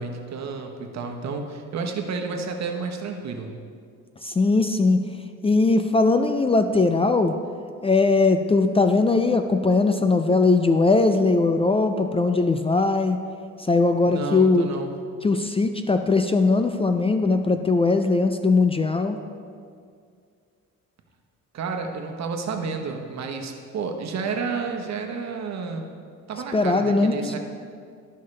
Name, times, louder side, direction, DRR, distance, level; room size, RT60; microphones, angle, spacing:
voice 1, 0.0-3.5 14.0-14.9 21.5-25.9 26.3-27.4, right 4 dB, 60° right, 3 dB, 1.1 m, -31 dB
voice 2, 4.2-5.0 5.4-7.3 7.8-13.2 13.6-14.7 15.2-19.2 26.5-27.4, left 3 dB, 20° left, 7 dB, 0.3 m, -20 dB
13.0 x 5.6 x 3.2 m, 2.2 s
cardioid pair, 90°, 30 cm